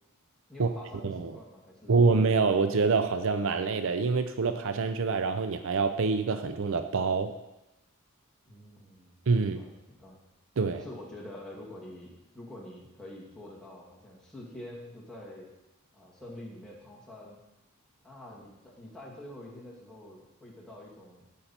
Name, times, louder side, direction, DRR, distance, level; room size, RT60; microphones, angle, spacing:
voice 1, 0.5-2.1 8.4-10.2 10.7-15.5 15.9-17.4 18.0-21.3, left 1 dB, 5° left, -5 dB, 2.4 m, -47 dB
voice 2, 1.0-1.4 1.9-7.3 9.3-9.6 10.6-10.8, right 4 dB, 60° right, 9 dB, 0.5 m, -26 dB
15.5 x 5.6 x 4.4 m, 0.96 s
head